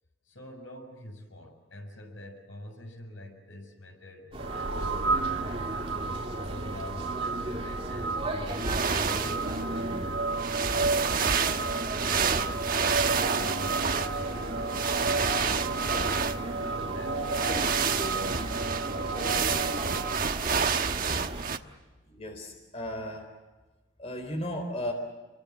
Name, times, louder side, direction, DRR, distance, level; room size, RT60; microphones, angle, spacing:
voice 1, 0.3-5.8 6.4-11.3 11.9-16.2 16.6-18.4, left 1 dB, 80° left, 3 dB, 6.9 m, -47 dB
sound 1, 4.3-21.4, right 1 dB, 30° right, 3.2 m, -36 dB
sound 2, 4.4-20.2, right 3 dB, 75° right, 1.6 m, -33 dB
sound 3, 8.5-9.6 10.3-16.7 17.2-21.6, right 6 dB, 45° right, 1.2 m, -29 dB
voice 2, 22.0-23.3 24.0-24.9, left 1 dB, 30° left, 4 dB, 4.0 m, -35 dB
30.0 x 23.5 x 7.3 m, 1.2 s
head